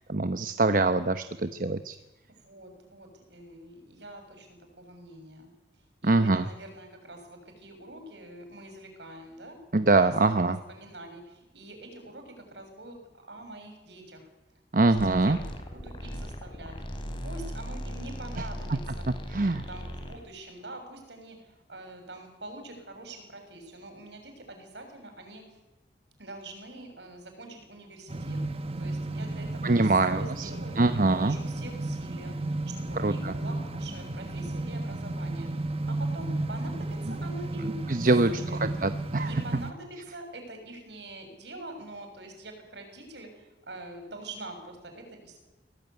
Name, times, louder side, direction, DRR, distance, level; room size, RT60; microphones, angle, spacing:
voice 1, 0.0-2.0 6.0-6.5 9.7-10.6 14.7-15.4 19.3-19.7 29.6-30.5 30.8-31.4 32.9-33.3 37.6-39.3, right 2 dB, 50° right, 10 dB, 0.9 m, -24 dB
voice 2, 2.4-5.5 6.0-9.6 10.7-13.0 13.3-14.2 14.7-15.4 15.7-18.8 19.7-25.4 26.2-28.4 28.8-32.5 32.8-37.8 38.3-38.6 39.2-45.4, right 2 dB, 70° right, 5 dB, 7.1 m, -45 dB
sound 1, 15.0-20.2, equal, 25° left, 3.6 m, -38 dB
sound 2, 28.1-39.7, right 2 dB, 35° right, 1.5 m, -33 dB
23.5 x 18.0 x 9.7 m, 1.0 s
head